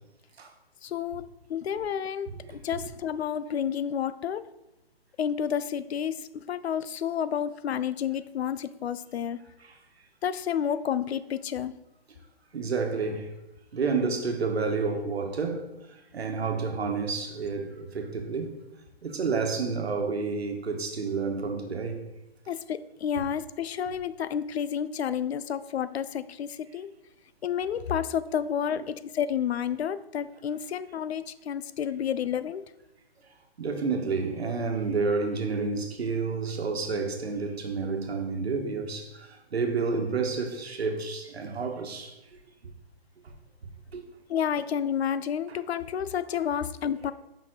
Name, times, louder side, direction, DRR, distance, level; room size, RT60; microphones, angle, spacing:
voice 1, 0.8-4.5 5.2-9.4 10.2-11.7 22.5-26.9 27.4-32.6 44.3-47.1, left 8 dB, 85° left, 0.5 m, -30 dB
voice 2, 2.4-2.8 9.6-9.8 12.5-13.3 13.7-18.6 19.0-22.0 28.7-28.8 33.6-42.2 43.9-44.0 45.5-45.6 46.4-46.5, right 4 dB, 80° right, 1.2 m, -30 dB
5.2 x 5.1 x 3.7 m
hypercardioid pair, 170°, 31 cm